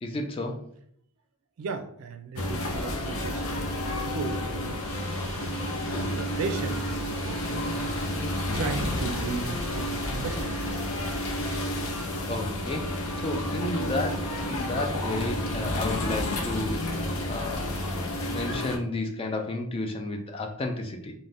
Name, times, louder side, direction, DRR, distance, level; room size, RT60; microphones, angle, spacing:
voice 1, 0.0-0.6 12.3-16.9 17.3-17.7 18.3-21.1, left 2 dB, 25° left, 4 dB, 0.3 m, -32 dB
voice 2, 1.6-8.3 8.5-10.6, right 4 dB, 85° right, 8 dB, 0.4 m, -36 dB
sound 1, 2.4-18.8, left 1 dB, 80° left, 0.5 m, -30 dB
sound 2, 4.8-11.6, equal, 55° left, 1.0 m, -45 dB
2.5 x 2.1 x 3.3 m, 0.66 s
head